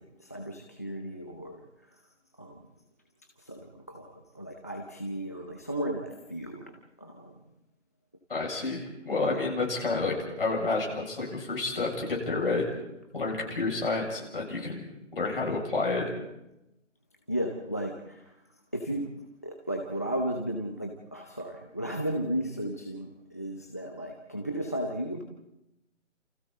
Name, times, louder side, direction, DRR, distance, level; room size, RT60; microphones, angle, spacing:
voice 1, 0.0-2.0 2.4-2.7 3.4-6.6 7.0-7.4 9.3-9.5 17.3-18.4 18.7-19.1 19.4-25.2, right 1 dB, 15° left, 3 dB, 0.8 m, -35 dB
voice 2, 8.3-12.7 13.1-16.2, left 3 dB, 45° left, 0 dB, 7.3 m, -30 dB
29.0 x 28.5 x 4.2 m, 0.88 s
figure-of-eight pair, 165°, 39 cm